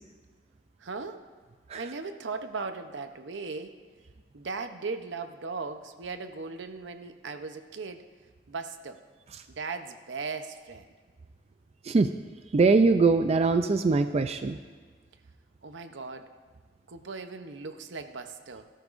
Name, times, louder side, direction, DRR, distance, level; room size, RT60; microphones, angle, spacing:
voice 1, 0.8-1.3 1.7-3.8 4.3-8.1 8.5-9.0 9.5-10.9 15.6-16.3 16.9-18.7, right 4 dB, 75° right, 8 dB, 0.8 m, -38 dB
voice 2, 12.5-14.6, right 4 dB, 35° right, 9 dB, 0.4 m, -22 dB
18.5 x 13.0 x 2.5 m, 1.5 s
head